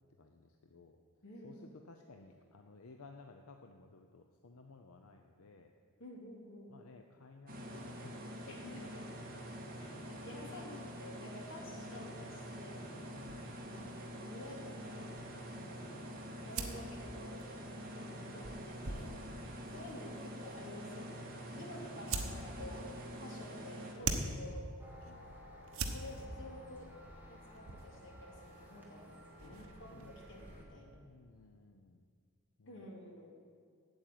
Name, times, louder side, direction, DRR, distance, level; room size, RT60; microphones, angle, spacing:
voice 1, 0.2-1.0 1.4-5.7 6.7-8.9 10.4-10.9 11.6-11.8 13.1-13.6 14.5-15.3 18.9-19.2 21.5-21.9 25.1-25.3 29.4-30.2 31.0-32.1 32.6-32.8, left 3 dB, 85° left, 4 dB, 0.7 m, -57 dB
voice 2, 1.2-1.7 6.0-6.8 8.5-8.8 9.8-13.2 13.7-15.0 15.5-16.1 16.4-17.6 18.1-21.3 21.6-24.7 25.9-26.9 27.2-29.0 29.4-31.0 32.7-33.3, left 1 dB, 65° left, -1 dB, 2.4 m, -51 dB
sound 1, 7.5-23.9, equal, 45° right, 1.9 m, -46 dB
sound 2, 13.2-30.1, right 3 dB, 75° right, 1.1 m, -46 dB
sound 3, 24.8-30.6, left 1 dB, 10° right, 1.8 m, -55 dB
8.7 x 7.9 x 9.0 m, 2.1 s
head